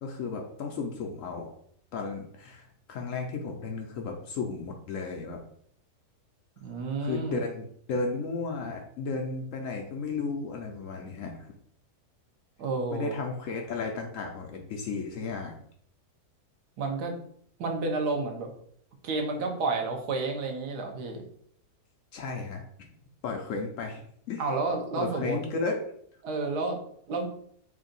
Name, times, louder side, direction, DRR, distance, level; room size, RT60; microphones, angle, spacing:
voice 1, 0.0-1.5 1.9-5.4 7.0-11.5 12.9-15.6 22.1-22.6 23.2-24.0 24.3-24.4 25.0-25.9, left 4 dB, 70° left, 1 dB, 0.8 m, -34 dB
voice 2, 6.6-7.4 12.6-13.2 16.8-17.1 17.6-18.5 19.0-21.2 24.4-25.4 26.2-26.8 27.1-27.3, right 3 dB, 80° right, 3 dB, 1.3 m, -30 dB
3.4 x 2.6 x 3.8 m, 0.65 s
omnidirectional pair, 1.7 m